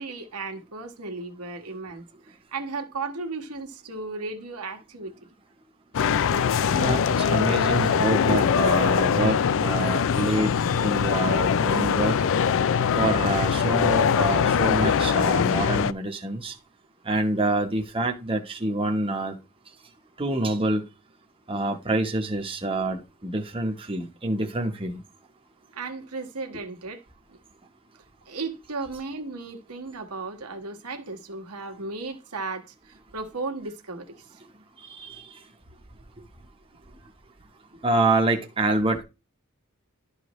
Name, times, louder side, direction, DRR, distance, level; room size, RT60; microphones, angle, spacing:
voice 1, 0.0-5.1 25.7-27.0 27.3-27.4 28.2-34.1, right 3 dB, 85° right, 1.5 m, -35 dB
sound 1, 5.9-15.9, left 7 dB, 60° left, 0.4 m, -22 dB
voice 2, 6.7-12.1 12.9-16.5 17.0-19.4 20.2-20.8 21.5-25.0 34.8-35.2 37.8-39.0, right 2 dB, 25° right, 1.0 m, -27 dB
12.0 x 4.9 x 3.1 m
head